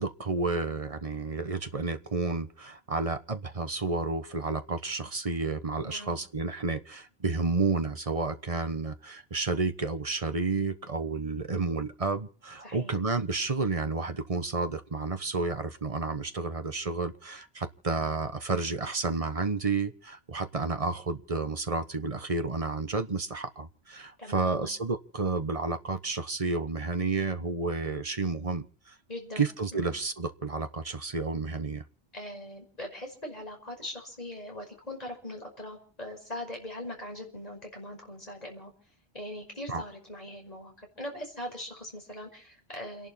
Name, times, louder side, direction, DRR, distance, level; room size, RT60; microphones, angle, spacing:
voice 1, 0.0-28.9 29.4-31.8 39.7-39.8, right 3 dB, 35° right, 9 dB, 1.2 m, -31 dB
voice 2, 5.8-6.2 12.6-12.9 24.2-24.7 29.1-29.4 29.7-29.9 32.1-38.7 39.1-43.1, left 1 dB, 40° left, 1 dB, 5.8 m, -41 dB
29.5 x 11.5 x 4.3 m, 0.42 s
omnidirectional pair, 1.0 m